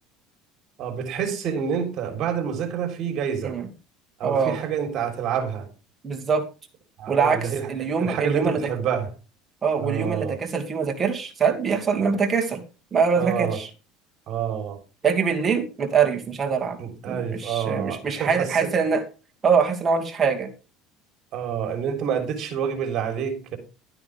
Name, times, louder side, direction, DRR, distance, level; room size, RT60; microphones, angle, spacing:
voice 1, 0.8-3.5 4.2-5.7 7.0-7.7 8.0-9.1 9.8-10.4 13.2-13.6 14.3-14.8 16.8-18.7 21.3-23.6, right 7 dB, 50° right, 5 dB, 3.6 m, -27 dB
voice 2, 4.2-4.6 6.0-6.4 7.1-8.6 9.6-12.6 12.9-13.7 15.0-16.8 17.1-19.0 19.4-20.5, right 6 dB, 25° right, 2 dB, 2.4 m, -23 dB
12.5 x 9.2 x 3.5 m, 0.33 s
supercardioid pair, 120°, 0 cm